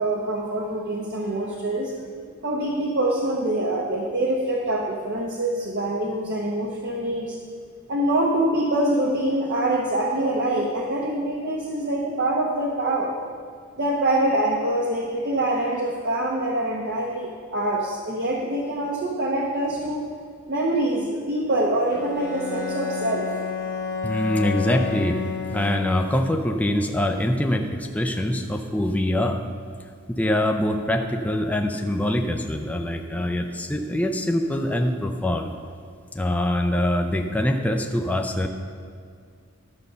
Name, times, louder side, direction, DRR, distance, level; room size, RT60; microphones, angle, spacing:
voice 1, 0.0-1.9 2.4-7.4 7.9-13.1 13.8-20.1 20.5-23.3, right 1 dB, 55° right, -1 dB, 1.0 m, -25 dB
Bowed string instrument, 21.9-26.3, left 5 dB, 45° left, 1.3 m, -30 dB
voice 2, 24.0-25.2 25.5-29.4 30.1-35.5 36.1-38.5, left 1 dB, 5° left, 3 dB, 0.5 m, -24 dB
12.0 x 5.3 x 6.7 m, 2.2 s
head